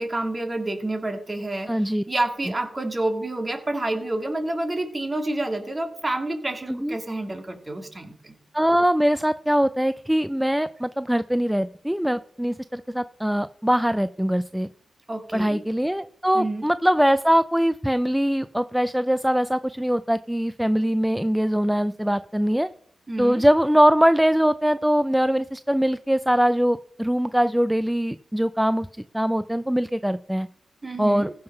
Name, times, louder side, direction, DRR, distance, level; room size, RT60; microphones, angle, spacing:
voice 1, 0.0-1.7 2.1-8.3 15.1-15.6 16.3-16.7 23.1-23.4 30.8-31.3, right 2 dB, 30° right, 6 dB, 2.0 m, -28 dB
voice 2, 1.7-2.0 6.7-7.0 8.5-14.7 15.3-22.7 23.2-28.9 29.1-30.5 31.0-31.3, equal, 5° right, 13 dB, 0.4 m, -22 dB
15.0 x 5.7 x 5.5 m, 0.63 s
cardioid pair, 70°, 0 cm